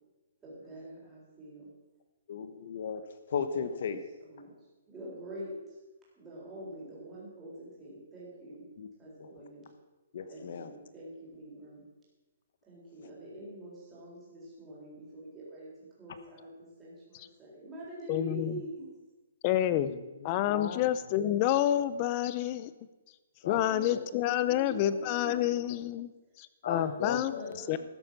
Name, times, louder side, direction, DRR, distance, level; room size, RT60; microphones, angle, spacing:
voice 1, 0.4-1.7 3.5-3.6 4.3-4.6 4.9-5.6 6.2-8.6 9.0-9.7 10.3-11.8 12.7-15.7 16.0-16.5 16.8-18.9 23.7-25.5 26.6-27.1 27.4-27.8, right 1 dB, 10° right, -7 dB, 4.2 m, -45 dB
voice 2, 2.3-4.0 8.8-8.9 9.2-9.3 10.1-10.7 19.7-20.0 20.5-20.8 21.2-21.3 23.4-24.0 26.6-27.6, left 6 dB, 45° left, 11 dB, 1.1 m, -36 dB
voice 3, 18.1-18.6 19.4-19.9 20.2-22.7 23.5-26.1 26.4-27.8, left 12 dB, 20° left, 14 dB, 0.5 m, -29 dB
13.5 x 9.7 x 5.9 m, 1.2 s
hypercardioid pair, 175°, 0 cm